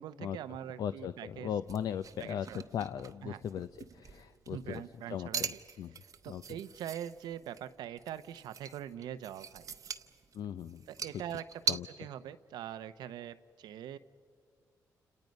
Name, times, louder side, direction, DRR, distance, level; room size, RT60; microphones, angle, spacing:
voice 1, 0.0-1.5 2.2-2.6 3.2-3.4 4.5-5.4 6.0-9.7 10.9-14.0, right 10 dB, 85° right, 12 dB, 0.7 m, -43 dB
voice 2, 0.8-2.5 2.7-3.7 3.9-4.8 5.1-5.5 5.8-5.9 6.3-6.4 10.3-10.8 11.7-11.9, left 9 dB, 70° left, 12 dB, 0.5 m, -37 dB
sound 1, 1.6-11.8, right 5 dB, 55° right, 0.9 m, -41 dB
29.5 x 27.5 x 5.3 m, 2.1 s
cardioid pair, 75°, 7 cm